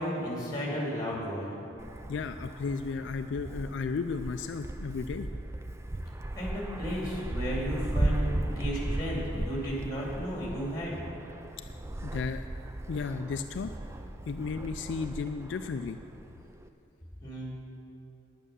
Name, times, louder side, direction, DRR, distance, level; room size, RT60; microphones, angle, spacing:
voice 1, 0.0-1.5 6.3-11.0 17.2-17.5, equal, 20° left, -4 dB, 2.5 m, -34 dB
Wind, 1.8-16.7, right 1 dB, 15° right, 0.3 m, -36 dB
voice 2, 2.1-5.3 12.0-12.5 12.9-13.7 14.3-16.0, left 4 dB, 65° left, 8 dB, 0.3 m, -34 dB
9.9 x 8.8 x 6.8 m, 2.9 s
head